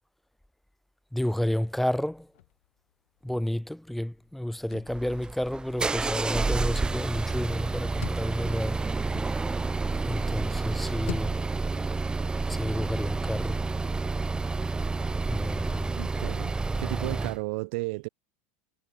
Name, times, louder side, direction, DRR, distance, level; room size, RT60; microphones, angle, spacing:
voice 1, 1.1-2.3 3.2-8.8 10.0-11.4 12.5-13.6 15.3-15.9, left 1 dB, 5° left, 1.7 m, -31 dB
sound 1, 1.7-2.9 3.2-3.3 3.6-10.0 10.5-11.7, left 16 dB, 80° left, 7.0 m, -46 dB
sound 2, 4.9-17.4, right 3 dB, 15° right, 0.8 m, -29 dB
voice 2, 16.0-18.1, right 27 dB, 70° right, 2.2 m, -34 dB
supercardioid pair, 110°, 7 cm